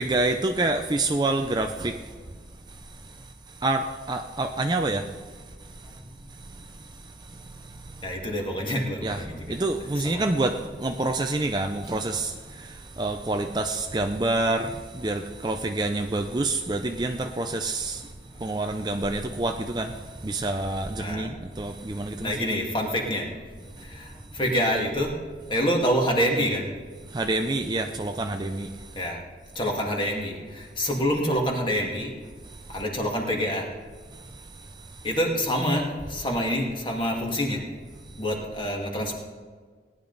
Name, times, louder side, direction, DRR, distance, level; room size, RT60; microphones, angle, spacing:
voice 1, 0.0-2.1 2.7-6.0 6.3-8.0 9.0-9.2 9.5-18.1 18.4-22.4 27.1-29.0 32.5-32.8 34.1-35.1, right 2 dB, 25° right, 5 dB, 0.5 m, -28 dB
voice 2, 8.0-9.4 10.0-10.2 21.0-21.3 22.2-23.3 24.3-25.1 25.5-26.7 29.0-29.2 29.6-30.3 30.8-32.1 32.7-33.6 35.0-35.8 36.1-37.6 38.2-39.1, equal, 25° left, 0 dB, 2.0 m, -26 dB
18.0 x 10.5 x 4.0 m, 1.5 s
head